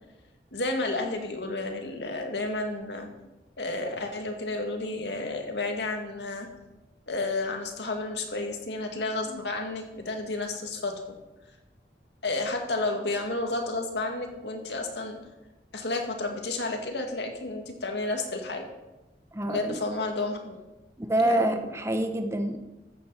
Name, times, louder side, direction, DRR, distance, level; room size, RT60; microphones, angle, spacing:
voice 1, 0.5-3.1 3.6-6.5 7.1-10.9 12.2-15.2 15.7-18.7 19.5-20.5 21.2-21.7, left 2 dB, 80° left, 3 dB, 2.2 m, -31 dB
voice 2, 19.3-19.8 21.0-22.6, right 1 dB, 15° right, 6 dB, 0.9 m, -26 dB
14.0 x 8.8 x 5.7 m, 1.1 s
head